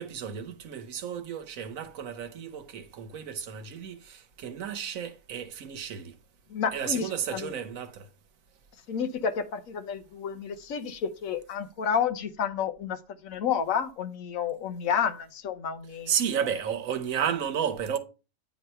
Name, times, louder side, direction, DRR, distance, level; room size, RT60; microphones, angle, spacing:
voice 1, 0.0-6.1 6.7-8.1 16.1-18.0, right 8 dB, 75° right, 1.3 m, -32 dB
voice 2, 6.5-7.5 8.9-16.1, left 7 dB, 75° left, 1.2 m, -30 dB
9.1 x 3.1 x 5.4 m
omnidirectional pair, 1.5 m